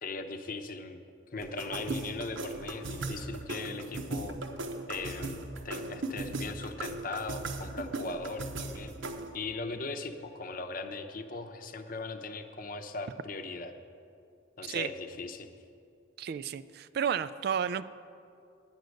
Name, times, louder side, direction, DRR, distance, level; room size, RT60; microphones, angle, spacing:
voice 1, 0.0-1.0 1.3-4.4 4.9-13.7 14.6-15.5, left 3 dB, 45° left, 7 dB, 0.7 m, -39 dB
sound 1, 1.4-9.4, right 2 dB, 80° right, 0.8 m, -38 dB
voice 2, 16.2-17.9, right 8 dB, 55° right, 13 dB, 0.3 m, -32 dB
10.5 x 9.2 x 6.4 m, 2.5 s
head